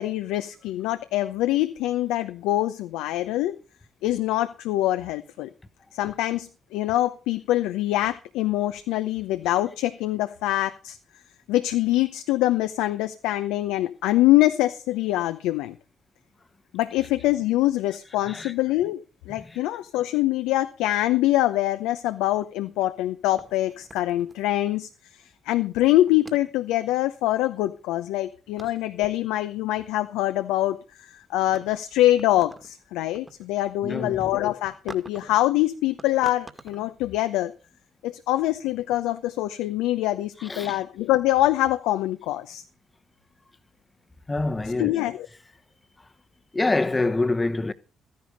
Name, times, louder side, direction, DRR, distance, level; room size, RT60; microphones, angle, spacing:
voice 1, 0.0-3.6 4.0-5.5 5.9-11.0 11.5-15.7 16.7-24.9 25.5-37.5 38.0-42.6 44.8-45.3, left 15 dB, 75° left, 0.7 m, -24 dB
sound 1, 23.4-24.9 26.0-26.6 28.1-28.2 28.5-29.0 30.7-30.9 31.3-32.7 33.0-33.5 34.0-34.2 34.9-35.4 36.0-36.9, right 2 dB, 20° right, 2.1 m, -45 dB
voice 2, 33.8-34.3 40.4-40.8 44.3-44.9 46.5-47.7, left 2 dB, 25° left, 1.1 m, -26 dB
14.5 x 10.5 x 5.2 m
hypercardioid pair, 45°, 0 cm